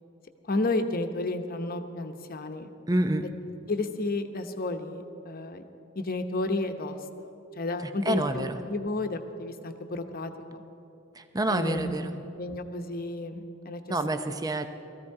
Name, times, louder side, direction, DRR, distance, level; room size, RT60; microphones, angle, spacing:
voice 1, 0.5-2.7 3.7-5.6 5.9-7.0 7.5-10.6 11.5-11.9 12.4-14.4, left 2 dB, 45° left, 6 dB, 1.0 m, -32 dB
voice 2, 2.9-3.3 8.1-8.6 11.2-12.2 13.9-14.7, right 1 dB, 20° right, 8 dB, 0.6 m, -27 dB
19.5 x 14.5 x 4.8 m, 2.8 s
head